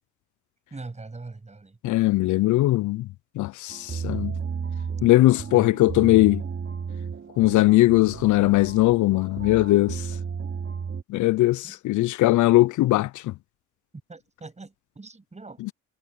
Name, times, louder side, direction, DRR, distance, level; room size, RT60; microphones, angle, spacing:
voice 1, 0.7-1.8 11.6-11.8 14.1-15.7, right 3 dB, 20° right, 7.5 m, -42 dB
voice 2, 1.8-3.1 3.4-4.4 5.0-6.4 7.4-10.1 11.1-13.3, left 17 dB, 75° left, 0.5 m, -20 dB
sound 1, 3.7-11.0, right 6 dB, 45° right, 4.2 m, -33 dB
cardioid pair, 90°, 30 cm